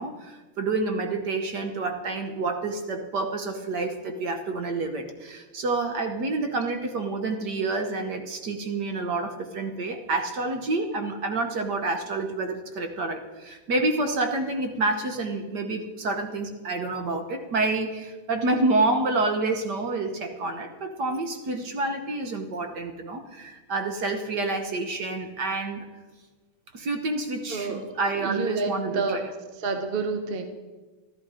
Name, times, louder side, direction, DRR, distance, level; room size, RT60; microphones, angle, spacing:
voice 1, 0.0-25.9 26.7-29.2, right 3 dB, 55° right, 5 dB, 1.5 m, -28 dB
voice 2, 27.5-27.9 28.2-29.2 29.5-30.4, right 4 dB, 35° right, 6 dB, 1.0 m, -29 dB
13.5 x 13.0 x 5.0 m, 1.3 s
omnidirectional pair, 2.4 m